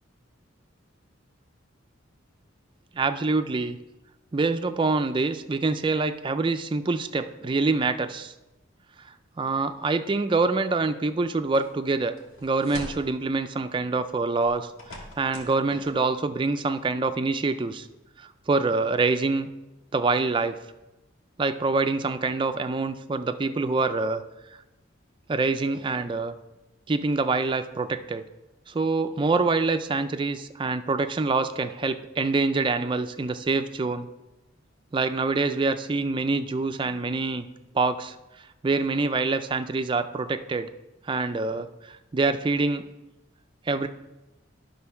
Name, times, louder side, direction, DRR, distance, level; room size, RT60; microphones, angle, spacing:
voice 1, 2.9-3.8 4.3-8.3 9.4-12.1 12.4-14.7 15.2-17.9 18.2-19.5 19.9-20.6 21.4-24.2 25.3-26.3 26.9-28.2 28.7-34.1 34.9-37.5 37.7-38.2 38.6-40.7 41.1-42.9 43.7-43.9, right 3 dB, 25° right, 9 dB, 0.3 m, -25 dB
sound 1, 11.5-11.7 12.2-13.1 14.4-15.6 15.8-15.9, left 1 dB, 90° left, 1.5 m, -42 dB
10.5 x 3.8 x 5.6 m, 1.0 s
head